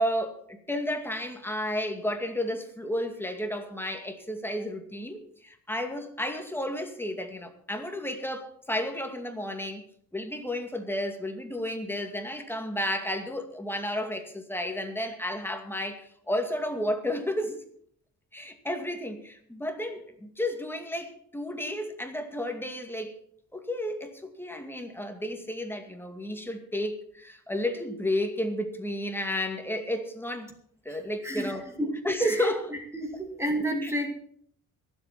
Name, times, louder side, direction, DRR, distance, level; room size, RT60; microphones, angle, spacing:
voice 1, 0.0-9.9 10.1-17.6 18.3-23.2 23.5-30.5 30.8-31.7 32.0-32.6 33.8-33.9, left 1 dB, 5° left, 5 dB, 2.3 m, -32 dB
voice 2, 31.2-32.5 32.9-34.1, right 1 dB, 10° right, 3 dB, 2.4 m, -30 dB
22.5 x 8.0 x 4.3 m, 0.62 s
cardioid pair, 90°, 30 cm